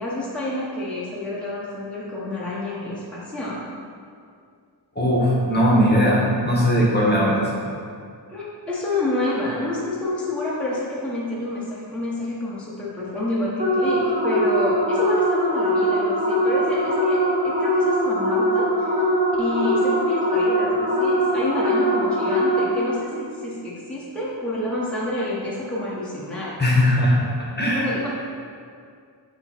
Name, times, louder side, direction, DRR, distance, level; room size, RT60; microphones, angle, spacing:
voice 1, 0.0-3.6 8.3-19.0 19.4-26.5 27.7-28.1, left 1 dB, ahead, -7 dB, 1.0 m, -28 dB
voice 2, 4.9-7.5 26.6-27.2 27.6-27.9, equal, 25° left, -4 dB, 1.1 m, -19 dB
sound 1, 13.6-23.0, equal, 20° right, 0.8 m, -21 dB
8.6 x 3.0 x 4.4 m, 2.2 s
wide cardioid pair, 135°, 44 cm